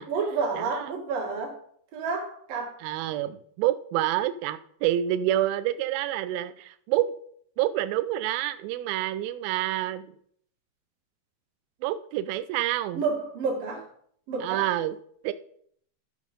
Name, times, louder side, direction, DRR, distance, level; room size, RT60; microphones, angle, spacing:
voice 1, 0.0-1.6 1.9-2.8 12.9-13.9 14.3-14.7, right 4 dB, 60° right, 0 dB, 3.4 m, -30 dB
voice 2, 2.8-7.1 7.6-10.1 11.8-13.0 14.4-15.0 15.2-15.3, right 13 dB, 85° right, 12 dB, 2.1 m, -27 dB
12.5 x 5.1 x 5.2 m, 0.63 s
omnidirectional pair, 4.8 m